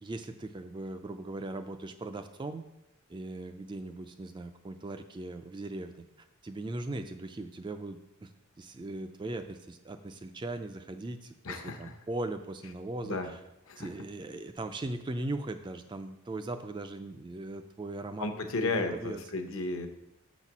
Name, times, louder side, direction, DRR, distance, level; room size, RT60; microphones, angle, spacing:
voice 1, 0.0-2.6 3.1-8.3 8.6-13.4 13.8-19.2, right 2 dB, 20° right, 8 dB, 0.3 m, -39 dB
voice 2, 11.4-11.9 13.0-13.3 13.7-13.9 18.2-19.9, left 3 dB, 65° left, 5 dB, 0.8 m, -33 dB
6.7 x 4.1 x 5.9 m, 0.90 s
head